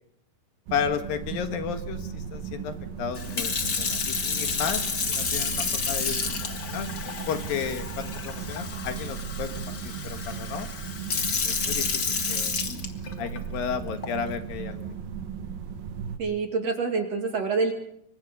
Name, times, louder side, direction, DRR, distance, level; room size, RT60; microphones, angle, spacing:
voice 1, 0.7-3.5 3.8-6.9 7.3-9.5 9.8-10.7 11.4-12.5 13.2-14.9, left 7 dB, 70° left, 8 dB, 3.0 m, -33 dB
sound 1, 0.7-16.2, right 7 dB, 70° right, 3.1 m, -36 dB
Sink (filling or washing) / Fill (with liquid), 3.1-13.4 14.0-14.3, left 5 dB, 40° left, 1.7 m, -30 dB
voice 2, 16.2-17.7, right 4 dB, 45° right, 4 dB, 3.2 m, -26 dB
26.0 x 25.0 x 5.3 m, 0.71 s
omnidirectional pair, 4.4 m